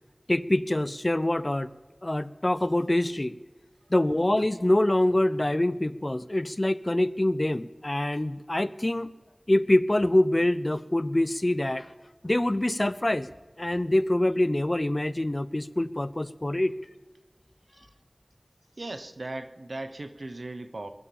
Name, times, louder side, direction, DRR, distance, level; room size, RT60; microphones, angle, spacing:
voice 1, 0.3-1.7 2.0-3.4 3.9-9.1 9.5-11.9 12.2-13.3 13.6-16.7, left 1 dB, 40° left, 16 dB, 0.6 m, -25 dB
voice 2, 18.8-20.9, right 2 dB, 80° right, 10 dB, 0.9 m, -38 dB
22.0 x 8.5 x 7.1 m, 1.3 s
wide cardioid pair, 45°, 0 cm